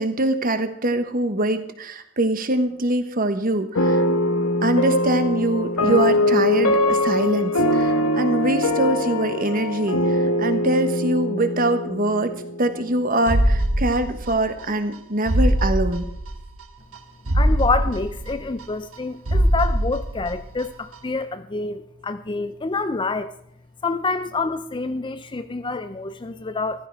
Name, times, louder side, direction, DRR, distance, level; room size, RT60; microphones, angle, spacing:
voice 1, 0.0-4.0 4.6-16.1, right 1 dB, 40° right, 9 dB, 1.2 m, -23 dB
sound 1, 3.8-12.9, left 1 dB, 90° left, 1.4 m, -22 dB
sound 2, 13.3-14.6 14.9-15.0 15.3-16.6 16.9-17.0 17.3-19.0 19.3-20.6 20.9-21.0, equal, 75° right, 1.3 m, -22 dB
voice 2, 17.3-23.3 23.8-26.9, left 3 dB, 20° left, 11 dB, 0.4 m, -27 dB
15.0 x 13.5 x 4.7 m, 0.72 s
head